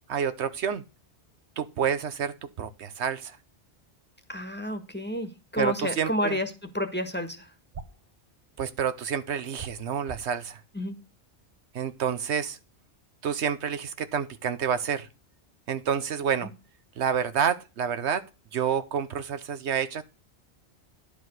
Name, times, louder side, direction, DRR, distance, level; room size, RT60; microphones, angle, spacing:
voice 1, 0.1-0.8 1.6-3.4 5.6-6.4 8.6-10.6 11.7-12.6 13.2-15.1 15.7-16.5 17.0-18.2 18.5-20.0, right 7 dB, 75° right, 1.1 m, -28 dB
voice 2, 4.3-7.5 10.7-11.0 16.4-16.5, left 1 dB, 10° left, 1.5 m, -30 dB
sound 1, 7.7-8.0 9.5-10.4, right 4 dB, 45° right, 1.0 m, -41 dB
11.0 x 5.1 x 6.3 m
omnidirectional pair, 1.2 m